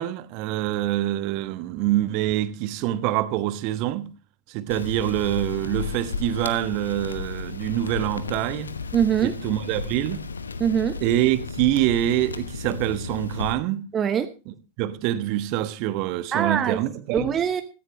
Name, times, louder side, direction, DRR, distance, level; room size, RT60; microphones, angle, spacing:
voice 1, 0.0-4.1 4.5-8.7 9.2-10.2 11.0-13.8 14.5-17.3, right 14 dB, 45° right, 1.2 m, -25 dB
sound 1, 4.7-13.5, left 5 dB, 75° left, 1.0 m, -34 dB
voice 2, 8.9-9.3 10.6-11.0 13.9-14.3 16.3-16.8 17.1-17.6, right 8 dB, 25° right, 1.0 m, -22 dB
17.0 x 14.5 x 3.2 m
figure-of-eight pair, 90°, 0 cm